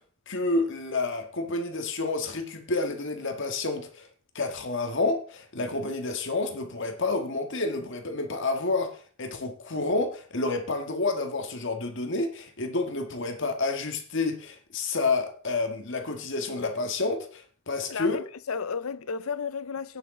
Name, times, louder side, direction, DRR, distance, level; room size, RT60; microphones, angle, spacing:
voice 1, 0.3-4.1 4.3-18.2, left 3 dB, 60° left, 1.6 m, -29 dB
voice 2, 17.9-20.0, left 5 dB, 80° left, 0.7 m, -33 dB
17.0 x 6.4 x 3.8 m
head